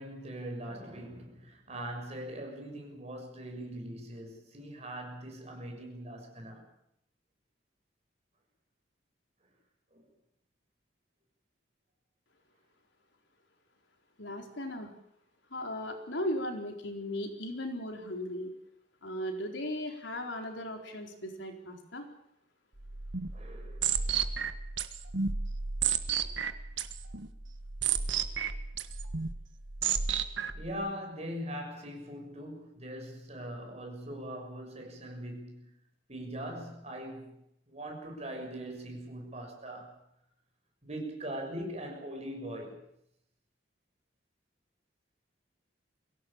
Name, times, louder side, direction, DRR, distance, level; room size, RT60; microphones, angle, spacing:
voice 1, 0.0-6.7 9.9-10.0 23.3-24.0 26.2-26.3 30.5-35.7 36.1-37.4 37.7-40.0 40.8-42.8, right 1 dB, 35° right, 6.5 m, -41 dB
voice 2, 14.2-14.9 15.5-18.5 19.0-22.0, left 1 dB, 75° left, 4.2 m, -37 dB
sound 1, 22.8-30.7, right 7 dB, 80° right, 1.6 m, -33 dB
24.0 x 17.0 x 8.8 m
head